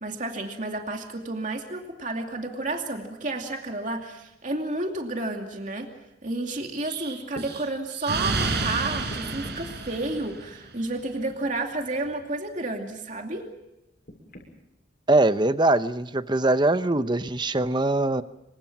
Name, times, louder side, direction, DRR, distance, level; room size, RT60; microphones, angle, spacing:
voice 1, 0.0-5.9 6.2-13.5, right 2 dB, 40° right, 3 dB, 2.6 m, -31 dB
Explosion, 6.8-10.7, right 3 dB, 60° right, 4.9 m, -30 dB
sound 1, 7.3-7.5 9.1-9.7 11.0-11.4 12.0-12.2 14.0-14.5 15.4-15.5, left 1 dB, 50° left, 6.6 m, -45 dB
voice 2, 15.1-18.2, right 2 dB, 25° right, 12 dB, 0.8 m, -22 dB
27.5 x 25.5 x 6.1 m, 0.92 s
head